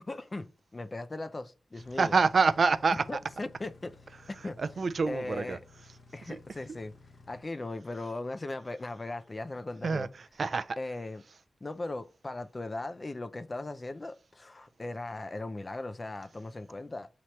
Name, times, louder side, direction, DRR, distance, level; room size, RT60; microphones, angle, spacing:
voice 1, 0.1-0.5 0.7-2.1 3.1-3.9 4.3-4.6 5.1-5.6 6.1-6.9 7.3-10.1 10.8-11.2 11.6-17.1, left 2 dB, 30° left, 0.4 m, -38 dB
sound 1, 1.8-7.4, left 3 dB, 55° left, 0.8 m, -56 dB
voice 2, 2.0-3.2 4.4-5.6 6.3-6.4 9.8-10.8, right 4 dB, 55° right, 0.3 m, -27 dB
5.8 x 2.9 x 3.1 m
wide cardioid pair, 100°, 0 cm